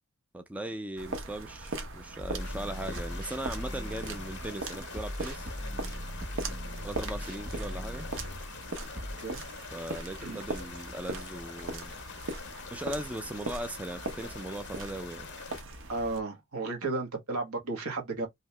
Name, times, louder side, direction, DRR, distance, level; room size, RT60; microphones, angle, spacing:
voice 1, 0.3-5.6 6.8-8.1 9.7-11.9 12.7-15.3, right 1 dB, 5° right, 0.3 m, -38 dB
sound 1, 1.0-16.2, right 2 dB, 60° right, 0.8 m, -40 dB
sound 2, 2.2-4.5 4.9-8.5 9.0-9.1, equal, 40° right, 1.3 m, -39 dB
sound 3, 2.4-15.6, left 6 dB, 55° left, 0.6 m, -46 dB
voice 2, 15.9-18.3, right 3 dB, 85° right, 1.2 m, -34 dB
2.8 x 2.7 x 3.2 m
head